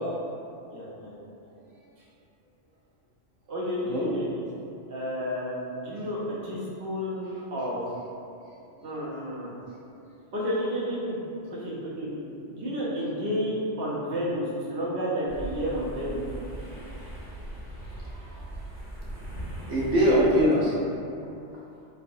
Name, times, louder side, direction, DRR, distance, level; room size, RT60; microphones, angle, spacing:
voice 1, 0.7-1.3 3.5-4.4 4.9-7.8 8.8-9.5 10.3-11.2 11.5-12.2 12.5-16.2, equal, 55° right, -7 dB, 0.8 m, -31 dB
voice 2, 8.5-8.8 17.8-18.3 19.3-19.4 19.7-20.8, equal, 90° right, -7 dB, 1.0 m, -24 dB
sound 1, 15.3-20.4, right 1 dB, 35° left, 1.6 m, -39 dB
3.1 x 2.1 x 2.6 m, 2.6 s
omnidirectional pair, 1.2 m